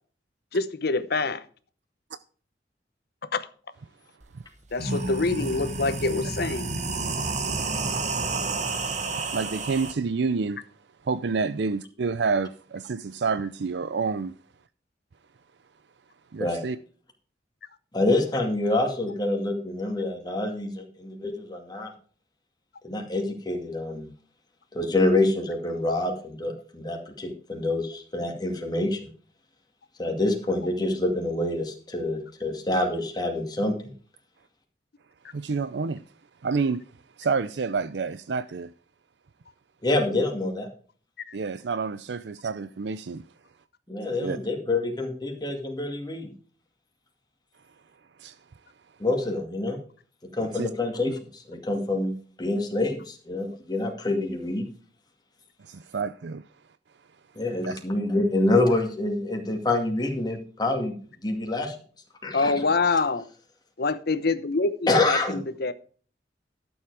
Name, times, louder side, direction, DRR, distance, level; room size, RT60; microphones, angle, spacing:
voice 1, 0.5-1.4 3.3-3.5 4.7-6.7 41.3-41.4 62.3-63.2 63.8-65.7, left 3 dB, 60° left, 0.9 m, -26 dB
sound 1, 4.2-4.3 4.7-9.9, right 3 dB, 45° right, 1.5 m, -30 dB
voice 2, 9.3-10.6 11.0-14.3 16.3-16.8 35.3-36.0 36.4-36.8 37.2-38.7 41.3-43.2 44.2-44.4 48.2-48.4 50.5-50.7 55.6-56.4 57.7-57.8, right 4 dB, 70° right, 0.5 m, -28 dB
voice 3, 17.9-21.9 22.8-24.1 24.7-29.0 30.0-33.9 39.8-40.7 43.9-46.3 49.0-49.8 50.3-54.7 57.4-60.9 61.2-61.7 62.2-62.7 64.9-65.4, left 2 dB, 25° left, 2.2 m, -26 dB
12.0 x 7.2 x 4.8 m
head